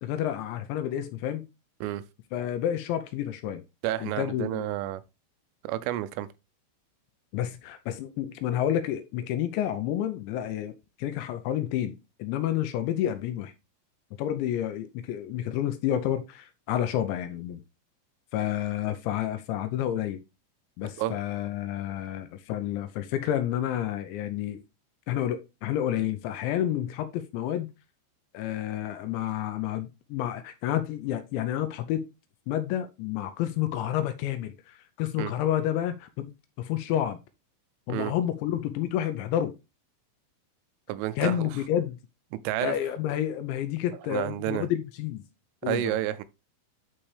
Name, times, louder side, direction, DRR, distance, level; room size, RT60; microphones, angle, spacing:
voice 1, 0.0-1.5 2.3-3.6 4.0-4.7 7.3-13.5 14.2-17.6 18.3-20.2 20.8-24.6 25.1-27.7 28.3-32.1 32.5-37.2 37.9-39.5 41.2-42.0 42.6-45.2 45.6-46.0, left 11 dB, 80° left, 2.8 m, -30 dB
voice 2, 3.8-5.0 5.6-6.3 21.0-21.2 35.2-35.3 37.9-38.1 40.9-41.5 42.3-42.7 44.1-44.7 45.6-46.2, right 14 dB, 90° right, 3.3 m, -30 dB
11.0 x 4.4 x 3.2 m
omnidirectional pair, 5.6 m